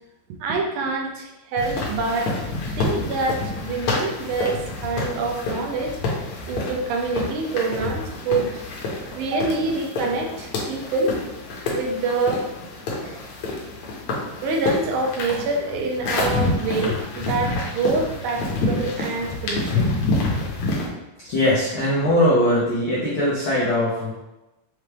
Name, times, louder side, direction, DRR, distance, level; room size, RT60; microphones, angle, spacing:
voice 1, 0.4-2.4 2.8-6.0 6.5-8.6 9.2-11.2 11.7-12.4 14.4-19.9, right 3 dB, 80° right, 1 dB, 2.0 m, -26 dB
sound 1, 1.6-20.9, left 2 dB, 70° left, 1.8 m, -28 dB
voice 2, 21.3-24.1, left 1 dB, 90° left, -8 dB, 1.1 m, -21 dB
5.8 x 2.3 x 3.3 m, 0.99 s
omnidirectional pair, 3.6 m